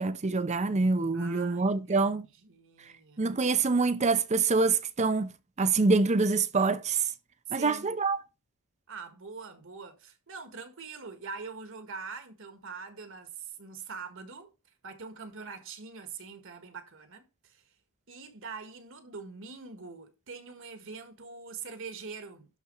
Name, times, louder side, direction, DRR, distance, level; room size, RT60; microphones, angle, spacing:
voice 1, 0.0-2.3 3.2-5.3 5.6-7.0 7.5-8.2, right 4 dB, 30° right, 0.6 m, -25 dB
voice 2, 1.1-2.1 2.4-3.4 7.5-7.9 8.9-14.5 14.8-17.6 18.1-22.6, right 5 dB, 60° right, 1.7 m, -43 dB
12.0 x 4.2 x 5.5 m
head